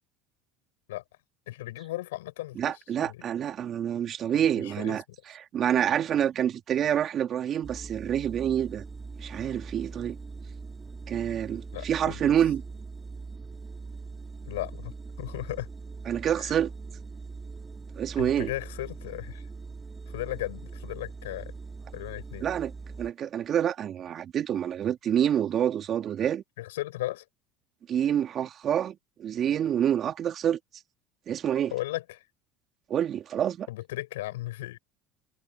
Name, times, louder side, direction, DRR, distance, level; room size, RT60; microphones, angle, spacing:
voice 1, 1.5-3.2 4.6-5.0 11.7-12.3 14.5-15.7 16.4-16.5 18.2-19.4 20.1-21.5 21.9-22.5 26.6-27.2 31.7-32.0 33.7-34.8, left 17 dB, 85° left, 6.9 m, -36 dB
voice 2, 2.6-8.8 9.2-10.2 11.1-12.6 16.1-16.7 18.0-18.5 22.4-22.7 23.0-26.4 27.9-30.6 31.3-31.7 32.9-33.7, right 9 dB, 45° right, 2.9 m, -27 dB
sound 1, 7.6-23.1, right 4 dB, 20° right, 3.8 m, -42 dB
supercardioid pair, 90°, 0 cm